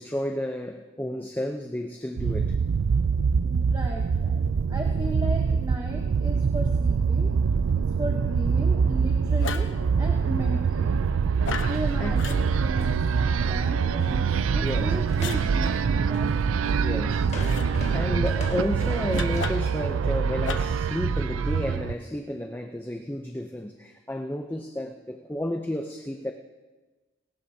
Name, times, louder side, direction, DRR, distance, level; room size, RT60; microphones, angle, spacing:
voice 1, 0.0-2.6 12.0-12.2 13.4-13.5 14.6-15.0 16.8-26.3, left 1 dB, 10° left, 4 dB, 0.5 m, -32 dB
sound 1, 2.2-21.9, right 5 dB, 90° right, 0.4 m, -24 dB
voice 2, 3.4-7.3 7.7-9.7 10.0-11.0 11.6-16.4, right 1 dB, 20° right, 1 dB, 0.9 m, -36 dB
sound 2, 9.4-9.8 11.4-11.8 12.2-12.4 15.2-15.4 17.4-17.7 19.1-19.8 20.4-20.8, left 5 dB, 70° left, 0.9 m, -34 dB
sound 3, 11.4-13.7 14.0-14.2 14.6-14.8 15.1-19.7, left 2 dB, 35° left, 1.3 m, -42 dB
18.5 x 18.0 x 2.8 m, 1.3 s
head